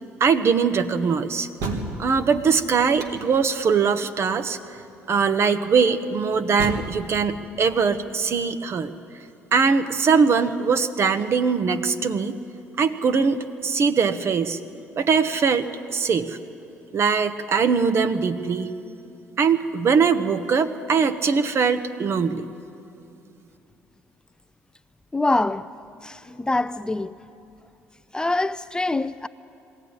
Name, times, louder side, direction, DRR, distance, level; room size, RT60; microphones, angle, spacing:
voice 1, 0.2-1.5 2.0-4.8 5.1-8.9 9.5-12.4 12.8-14.6 15.0-16.4 16.9-18.7 19.4-22.5, right 5 dB, 50° right, 1.1 m, -21 dB
sound 1, 1.6-2.2 3.0-3.5 4.2-4.4 4.8-4.9 6.6-6.8, right 3 dB, 75° right, 2.0 m, -30 dB
voice 2, 25.1-25.7 26.0-27.1 28.1-29.3, left 2 dB, 15° left, 0.5 m, -24 dB
21.5 x 15.5 x 9.6 m
supercardioid pair, 70°, 6 cm